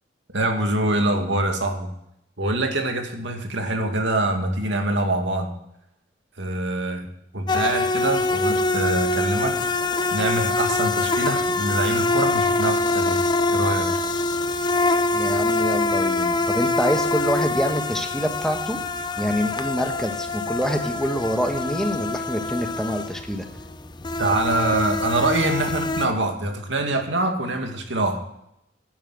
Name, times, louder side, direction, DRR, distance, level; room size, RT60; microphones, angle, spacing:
voice 1, 0.3-1.9 2.4-5.5 6.4-7.1 7.3-9.5 10.1-13.9 24.2-28.2, right 2 dB, 75° right, 4 dB, 2.4 m, -24 dB
sound 1, 7.5-26.1, left 2 dB, 25° left, 0.6 m, -24 dB
voice 2, 15.1-18.8 19.2-23.4, equal, 5° left, 5 dB, 1.3 m, -26 dB
10.5 x 10.0 x 7.7 m, 0.79 s
head